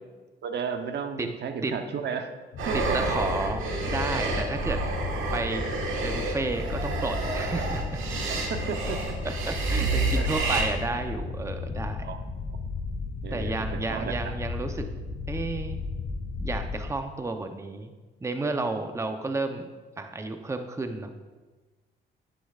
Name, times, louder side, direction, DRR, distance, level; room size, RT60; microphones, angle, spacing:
voice 1, 0.4-2.3 2.7-3.0 4.6-4.7 8.5-9.0 9.8-9.9 10.1-10.3 12.0-12.2 13.2-13.5 13.9-14.1, right 6 dB, 60° right, 7 dB, 0.9 m, -33 dB
sound 1, 2.5-16.9, left 4 dB, 70° left, 1.9 m, -34 dB
sound 2, 2.6-10.6, right 3 dB, 90° right, 1.6 m, -30 dB
voice 2, 2.7-4.8 5.3-5.6 6.0-8.0 9.2-12.1 13.3-14.9 15.3-15.8 16.4-17.9 18.2-19.7 20.0-21.1, right 3 dB, 15° right, 7 dB, 0.7 m, -32 dB
9.9 x 9.7 x 2.4 m, 1.3 s
cardioid pair, 90°, 20 cm